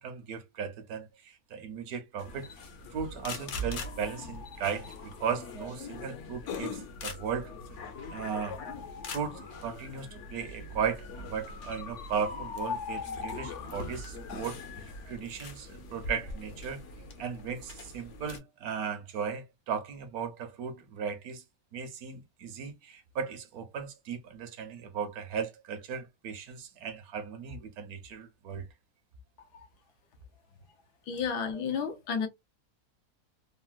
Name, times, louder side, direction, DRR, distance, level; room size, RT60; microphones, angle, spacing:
voice 1, 0.0-2.5 2.9-7.5 8.1-8.6 9.1-16.8 17.2-21.4 21.7-28.7, right 7 dB, 70° right, 1.1 m, -36 dB
sound 1, 2.2-18.4, left 3 dB, 60° left, 0.9 m, -41 dB
voice 2, 31.1-32.3, left 6 dB, 80° left, 1.3 m, -31 dB
3.8 x 2.0 x 2.4 m
omnidirectional pair, 1.7 m